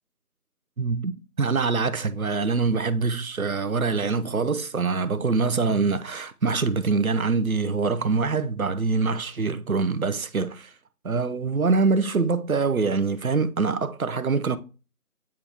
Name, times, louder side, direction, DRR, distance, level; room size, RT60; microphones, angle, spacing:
voice 1, 0.8-1.1 1.4-10.7 11.0-14.6, right 4 dB, 65° right, 0.7 m, -24 dB
8.6 x 3.7 x 2.9 m
figure-of-eight pair, 175°, 45 cm